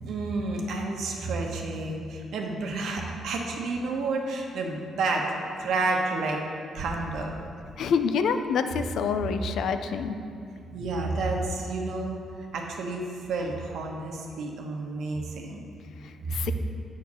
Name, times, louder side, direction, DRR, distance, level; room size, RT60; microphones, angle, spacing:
voice 1, 0.0-5.3 5.6-6.4 6.7-7.3 10.7-12.2 12.5-15.6 16.2-16.5, right 3 dB, 75° right, 1 dB, 1.1 m, -30 dB
voice 2, 7.8-10.2 16.0-16.5, left 6 dB, 70° left, 8 dB, 0.4 m, -27 dB
8.4 x 4.6 x 6.1 m, 2.4 s
cardioid pair, 125°, 0 cm